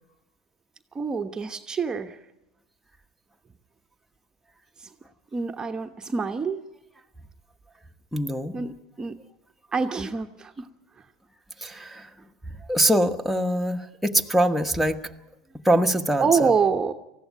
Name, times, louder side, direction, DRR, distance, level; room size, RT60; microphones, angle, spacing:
voice 1, 0.9-2.2 4.8-4.9 5.3-6.6 8.5-9.1 9.7-10.7 16.2-16.9, right 5 dB, 20° right, 5 dB, 1.1 m, -26 dB
voice 2, 8.1-8.5 11.6-12.1 12.7-15.0 15.6-16.5, right 1 dB, 5° right, 2 dB, 1.3 m, -23 dB
19.5 x 15.0 x 9.4 m, 0.96 s
hypercardioid pair, 95°, 3 cm